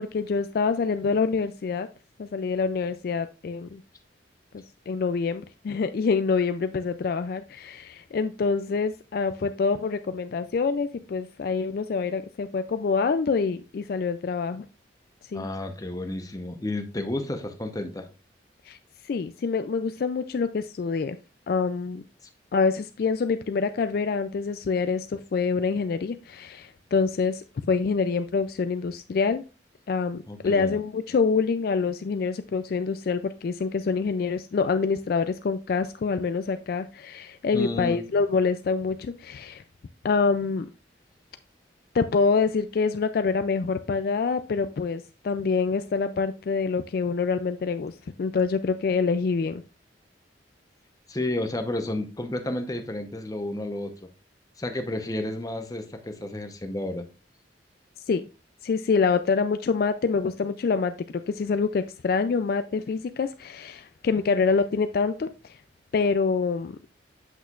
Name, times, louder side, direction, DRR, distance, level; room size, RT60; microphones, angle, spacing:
voice 1, 0.0-1.9 2.2-3.8 4.5-14.7 15.3-15.5 18.7-18.8 19.0-21.2 21.5-22.0 22.5-29.4 29.9-39.6 40.0-40.7 41.9-49.6 58.1-58.2 58.6-65.6 65.9-66.7, left 5 dB, 55° left, 10 dB, 0.3 m, -26 dB
voice 2, 15.3-18.1 30.3-30.8 37.5-38.0 51.1-53.9 54.6-57.1, left 1 dB, 20° left, 6 dB, 0.8 m, -31 dB
8.0 x 6.3 x 2.4 m, 0.31 s
head